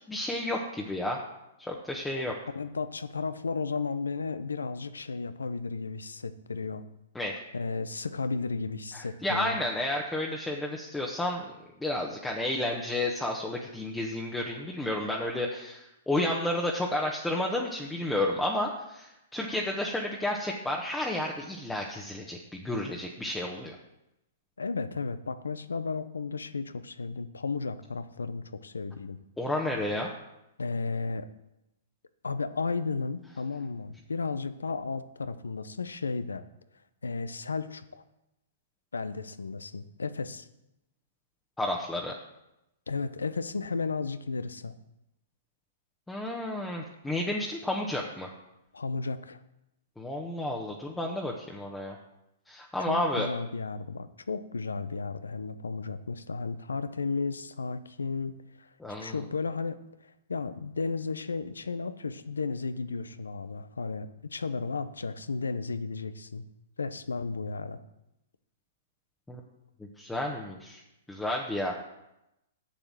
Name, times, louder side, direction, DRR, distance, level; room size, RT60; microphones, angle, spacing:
voice 1, 0.1-1.2 1.6-2.4 7.1-7.4 8.9-11.4 11.8-23.8 29.4-30.1 41.6-42.2 46.1-48.3 50.0-52.0 52.5-53.3 58.8-59.2 69.3-69.4 70.0-70.8 71.1-71.7, left 1 dB, 5° left, -1 dB, 1.1 m, -31 dB
voice 2, 2.5-6.8 7.5-9.6 24.6-29.2 30.6-31.3 32.2-36.4 37.0-37.8 38.9-40.5 42.9-44.7 48.7-49.4 52.8-58.7 59.0-66.4 66.8-67.8, left 4 dB, 85° left, 13 dB, 0.7 m, -34 dB
7.4 x 6.7 x 7.7 m, 0.90 s
hypercardioid pair, 120°, 0 cm